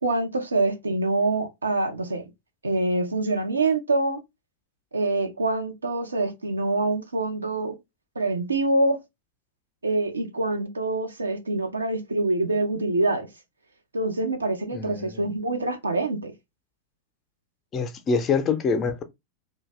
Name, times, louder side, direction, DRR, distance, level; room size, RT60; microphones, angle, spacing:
voice 1, 0.0-2.2 2.6-4.2 4.9-7.8 8.2-9.0 9.8-13.3 13.9-16.3, right 2 dB, 75° right, 0.6 m, -25 dB
voice 2, 14.7-15.3 17.7-19.0, left 5 dB, 30° left, 0.5 m, -25 dB
2.6 x 2.3 x 3.1 m
figure-of-eight pair, 90°, 0 cm